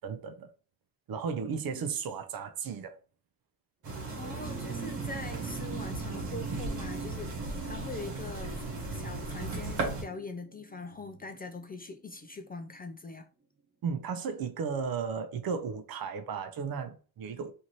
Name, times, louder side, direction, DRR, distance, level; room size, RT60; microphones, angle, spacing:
voice 1, 0.0-0.5 1.1-3.0 13.8-17.5, right 6 dB, 60° right, 0.6 m, -34 dB
sound 1, 3.8-10.0, right 3 dB, 85° right, 1.1 m, -36 dB
voice 2, 4.1-13.3, left 3 dB, 25° left, 0.3 m, -42 dB
sound 2, 4.1-12.8 14.0-14.1, right 6 dB, 30° right, 0.9 m, -45 dB
2.7 x 2.5 x 3.0 m
supercardioid pair, 65°, 41 cm